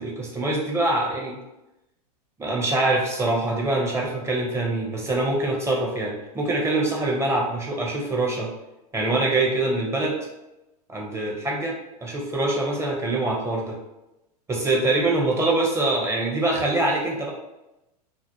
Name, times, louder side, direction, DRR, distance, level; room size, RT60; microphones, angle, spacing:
voice 1, 0.0-1.4 2.4-8.5 8.9-10.2 10.9-11.7 12.0-13.8 14.5-17.3, right 2 dB, 15° right, -1 dB, 0.5 m, -24 dB
2.4 x 2.1 x 2.7 m, 0.94 s
hypercardioid pair, 100°, 21 cm